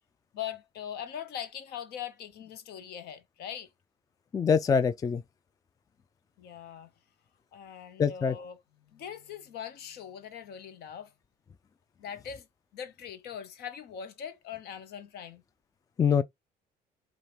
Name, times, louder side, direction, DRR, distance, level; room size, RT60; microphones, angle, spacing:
voice 1, 0.3-3.7 6.4-6.9 7.5-11.1 12.0-12.5 12.7-15.4, left 9 dB, 70° left, 0.9 m, -41 dB
voice 2, 4.3-5.2 8.0-8.3 16.0-16.2, left 6 dB, 20° left, 0.3 m, -24 dB
4.9 x 2.4 x 3.0 m
cardioid pair, 110°, 17 cm